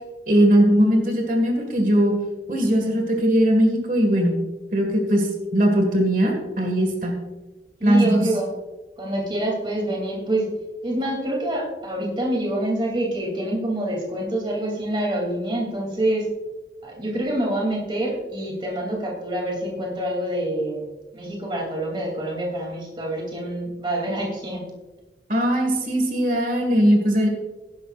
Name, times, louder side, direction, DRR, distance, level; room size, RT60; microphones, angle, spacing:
voice 1, 0.3-2.2 2.5-4.3 4.7-7.2 7.8-8.3 25.3-27.3, equal, 45° right, 3 dB, 1.8 m, -19 dB
voice 2, 7.8-8.6 9.0-10.5 10.8-16.3 16.8-20.8 21.1-24.7, right 1 dB, 25° right, -1 dB, 2.8 m, -26 dB
16.0 x 11.5 x 2.5 m, 1.1 s
head